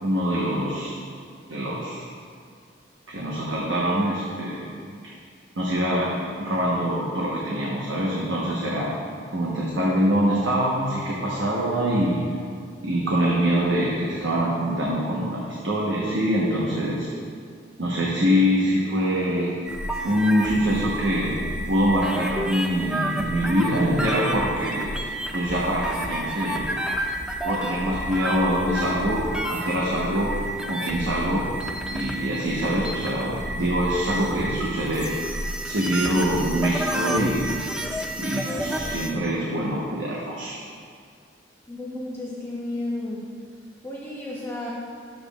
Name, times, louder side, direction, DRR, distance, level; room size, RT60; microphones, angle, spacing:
voice 1, 0.0-1.0 1.5-2.1 3.1-4.7 5.6-6.1 6.4-9.0 9.3-12.3 12.8-17.1 17.8-19.6 20.0-21.4 21.7-26.7 27.4-31.5 31.9-35.2 35.6-37.6 38.2-40.6, equal, 90° right, -5 dB, 1.2 m, -24 dB
sound 1, 19.6-39.1, right 1 dB, 5° right, 0.4 m, -30 dB
voice 2, 41.7-43.2 43.8-44.7, left 1 dB, 10° left, -7 dB, 0.9 m, -32 dB
12.0 x 7.6 x 2.4 m, 2.2 s
head